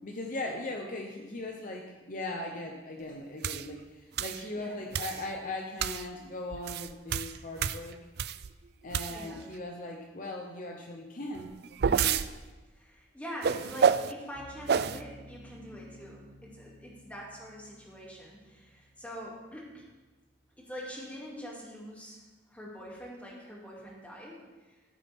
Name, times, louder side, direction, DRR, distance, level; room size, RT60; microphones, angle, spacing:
voice 1, 0.0-8.0 8.8-11.5 11.8-12.1, left 2 dB, 50° left, 2 dB, 0.9 m, -39 dB
sound 1, 3.4-3.7 4.2-4.4 4.9-5.3 5.8-6.1 6.5-8.5 8.9-9.4 11.3-12.3 13.4-14.1 14.7-15.0, right 7 dB, 60° right, 0.4 m, -28 dB
voice 2, 9.1-9.4 12.7-19.8 20.6-22.2 22.5-24.4 24.6-24.8, equal, 10° left, -4 dB, 2.7 m, -44 dB
sound 2, 14.3-21.4, right 1 dB, 35° right, 3.1 m, -55 dB
14.5 x 8.2 x 3.7 m, 1.2 s
head